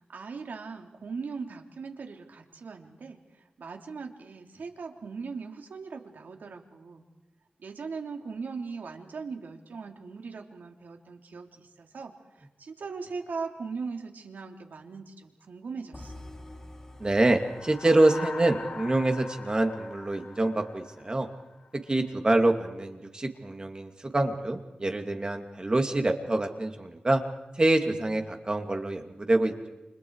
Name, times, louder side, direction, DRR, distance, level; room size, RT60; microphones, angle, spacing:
voice 1, 0.0-7.0 7.6-16.3, right 4 dB, 90° right, 3 dB, 3.4 m, -39 dB
sound 1, 15.9-20.0, left 1 dB, 15° left, 3.4 m, -49 dB
voice 2, 17.0-21.3 21.9-27.2 27.6-29.7, right 2 dB, 30° right, 5 dB, 2.6 m, -26 dB
sound 2, 17.1-21.7, left 4 dB, 55° left, 1.2 m, -42 dB
30.0 x 29.5 x 4.9 m, 1.1 s
wide cardioid pair, 105°, 3 cm